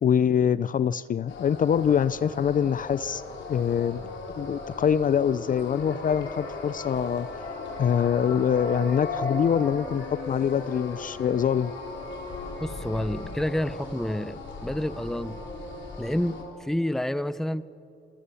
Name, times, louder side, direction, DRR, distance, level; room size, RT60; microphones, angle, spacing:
voice 1, 0.0-3.2 3.5-4.0 4.4-7.3 7.8-11.7, left 8 dB, 45° left, 0.5 m, -24 dB
sound 1, 1.3-16.4, left 3 dB, 70° left, 4.3 m, -37 dB
voice 2, 12.6-15.4 16.0-17.7, left 1 dB, ahead, 0.7 m, -29 dB
27.5 x 20.0 x 7.0 m
cardioid pair, 90°, 20 cm